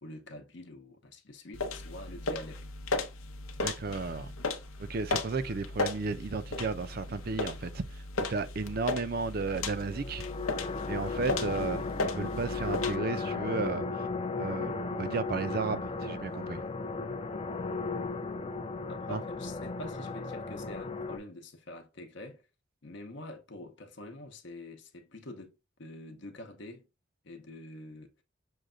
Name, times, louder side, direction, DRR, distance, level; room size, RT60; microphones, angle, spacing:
voice 1, 0.0-2.7 18.9-22.5 22.8-26.9 27.2-28.2, left 1 dB, 60° left, 0.8 m, -46 dB
sound 1, 1.5-13.0, left 3 dB, 90° left, 0.7 m, -36 dB
voice 2, 3.6-4.3 4.8-7.8 8.3-10.2 10.9-14.1 14.4-16.6 19.1-19.2, right 4 dB, 45° right, 0.4 m, -34 dB
sound 2, 9.8-21.2, left 3 dB, 25° left, 0.4 m, -35 dB
6.4 x 2.2 x 3.7 m
head